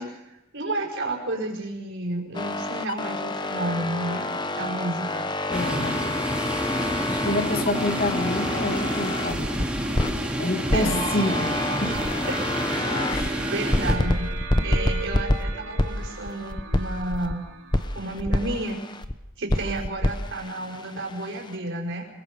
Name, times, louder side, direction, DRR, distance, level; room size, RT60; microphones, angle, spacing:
voice 1, 0.0-5.3 10.7-11.0 12.3-12.4 13.2-14.3 14.6-17.5 17.9-18.8 19.4-22.1, right 2 dB, 60° right, 0 dB, 5.5 m, -31 dB
sound 1, 2.3-10.2 10.7-13.3 13.7-17.4 17.7-19.1 19.5-21.6, left 1 dB, 20° left, 0.9 m, -28 dB
voice 2, 5.5-6.2 7.1-9.7 10.4-12.0 13.1-13.5 14.6-14.8, left 1 dB, 45° left, 5 dB, 2.0 m, -28 dB
sound 2, 5.5-13.9, equal, 5° right, 2.8 m, -29 dB
sound 3, 10.8-18.4, right 4 dB, 85° right, 3.2 m, -36 dB
25.5 x 22.5 x 5.4 m, 0.93 s
head